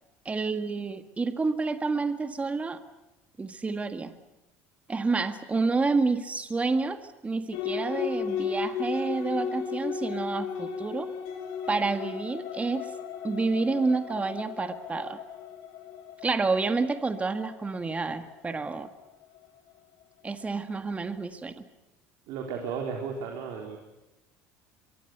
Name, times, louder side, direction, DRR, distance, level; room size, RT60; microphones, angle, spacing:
voice 1, 0.3-2.8 3.4-4.1 4.9-11.1 11.7-12.9 13.2-15.2 16.2-18.9 20.2-21.6, right 3 dB, 20° right, 9 dB, 1.7 m, -29 dB
sound 1, 7.5-19.5, left 7 dB, 75° left, 3.4 m, -35 dB
voice 2, 22.3-23.8, right 6 dB, 70° right, 2 dB, 4.1 m, -34 dB
24.0 x 23.0 x 8.0 m, 0.99 s
supercardioid pair, 95°, 7 cm